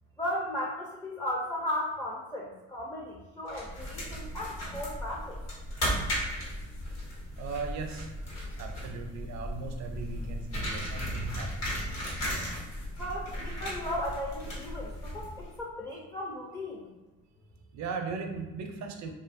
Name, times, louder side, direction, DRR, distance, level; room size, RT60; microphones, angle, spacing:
voice 1, 0.2-5.4 13.0-16.9, left 1 dB, 10° left, -3 dB, 0.4 m, -36 dB
sound 1, 3.5-15.5, equal, 60° left, 1.1 m, -36 dB
voice 2, 7.4-8.1 8.6-11.7 17.7-19.1, right 4 dB, 65° right, 4 dB, 0.5 m, -37 dB
2.6 x 2.5 x 2.4 m, 1.1 s
cardioid pair, 90°, 30 cm